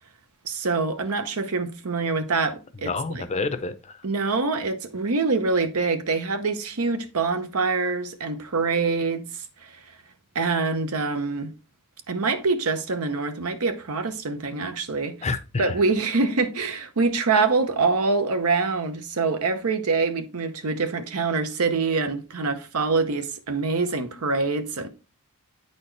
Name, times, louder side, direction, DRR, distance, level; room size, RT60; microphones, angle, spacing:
voice 1, 0.4-3.2 4.0-9.7 10.3-11.5 12.1-15.3 15.6-24.9, right 4 dB, 75° right, 0.8 m, -25 dB
voice 2, 2.9-4.0 15.2-15.8, left 4 dB, 30° left, 0.5 m, -28 dB
9.0 x 4.2 x 3.2 m
head